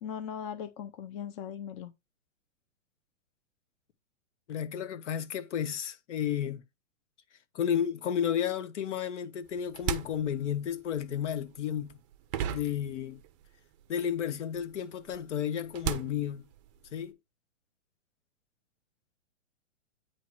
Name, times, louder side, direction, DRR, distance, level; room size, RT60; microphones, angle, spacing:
voice 1, 0.0-1.9, left 8 dB, 25° left, 0.5 m, -39 dB
voice 2, 4.5-6.6 7.5-11.9 12.5-13.2 13.9-16.4 16.9-17.2, left 9 dB, 60° left, 1.3 m, -32 dB
sound 1, 9.5-13.5 13.8-17.1, right 9 dB, 25° right, 0.5 m, -38 dB
9.2 x 3.1 x 4.5 m
hypercardioid pair, 145°, 39 cm